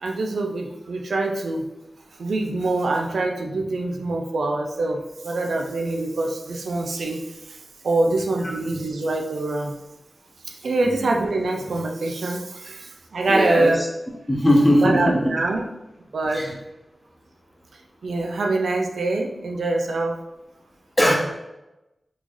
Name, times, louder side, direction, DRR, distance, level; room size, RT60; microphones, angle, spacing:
voice 1, 0.0-1.7 2.2-7.2 7.5-7.6 7.8-9.8 10.4-13.8 14.8-15.6 16.1-16.5 18.0-20.2 21.1-21.2, right 2 dB, 85° right, 2 dB, 0.4 m, -24 dB
voice 2, 13.3-13.9 14.3-15.3 16.3-16.5 21.0-21.2, equal, 15° left, 0 dB, 0.8 m, -19 dB
3.6 x 3.1 x 2.5 m, 0.97 s
wide cardioid pair, 65°, 0 cm